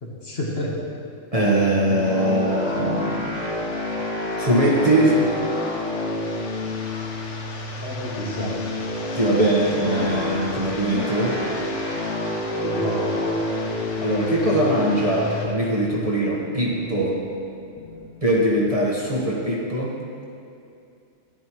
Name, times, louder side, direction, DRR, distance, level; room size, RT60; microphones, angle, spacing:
voice 1, 0.0-0.8 7.8-8.6 9.9-10.1 12.6-13.3, left 1 dB, 50° left, -3 dB, 1.6 m, -29 dB
voice 2, 1.3-3.4 4.4-5.2 9.1-11.4 14.0-17.2 18.2-20.0, right 1 dB, 30° right, -4 dB, 1.3 m, -21 dB
sound 1, 1.9-18.4, left 1 dB, 20° left, 1.9 m, -29 dB
sound 2, 2.0-15.5, left 3 dB, 65° left, 1.3 m, -38 dB
12.5 x 10.5 x 3.1 m, 2.5 s
omnidirectional pair, 1.4 m